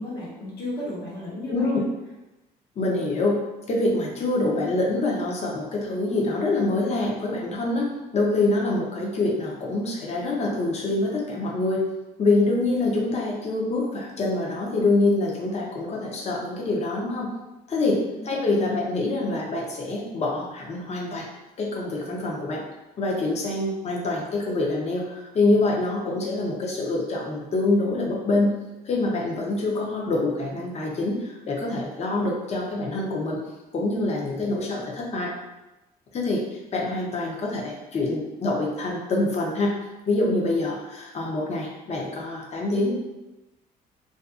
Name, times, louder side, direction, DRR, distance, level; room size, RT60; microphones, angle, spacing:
voice 1, 0.0-1.8 18.2-18.3, left 1 dB, 65° left, -7 dB, 1.2 m, -34 dB
voice 2, 1.5-1.8 2.8-3.4 3.7-7.9 8.1-11.9 12.2-17.3 17.7-18.0 18.2-21.2 21.6-22.6 23.0-28.6 28.8-33.4 33.7-35.3 36.1-36.4 36.7-39.8 40.1-42.9, left 2 dB, 40° left, -2 dB, 0.7 m, -25 dB
2.5 x 2.4 x 2.4 m, 1.0 s
cardioid pair, 110°, 17 cm